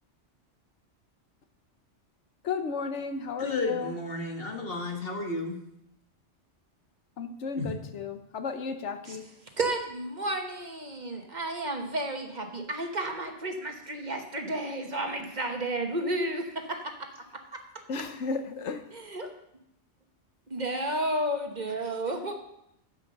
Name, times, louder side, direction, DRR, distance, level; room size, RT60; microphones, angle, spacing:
voice 1, 2.4-4.0 7.2-9.3 17.9-18.9, left 5 dB, 80° left, 8 dB, 1.2 m, -33 dB
voice 2, 3.4-5.6 7.6-7.7, left 2 dB, 55° left, 3 dB, 1.7 m, -32 dB
voice 3, 9.6-17.1 18.9-19.3 20.5-22.3, right 1 dB, 40° right, 4 dB, 1.3 m, -32 dB
9.6 x 8.0 x 6.7 m, 0.80 s
omnidirectional pair, 1.2 m